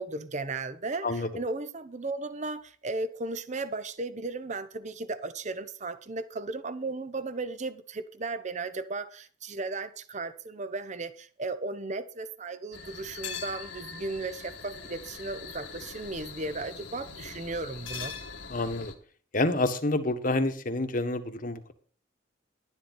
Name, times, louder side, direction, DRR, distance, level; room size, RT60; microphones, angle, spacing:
voice 1, 0.0-18.2, right 3 dB, 40° right, 0.8 m, -35 dB
sound 1, 12.7-18.9, left 6 dB, 80° left, 2.1 m, -42 dB
voice 2, 18.5-18.9 19.3-21.7, left 2 dB, 45° left, 1.4 m, -28 dB
11.5 x 11.0 x 4.3 m
head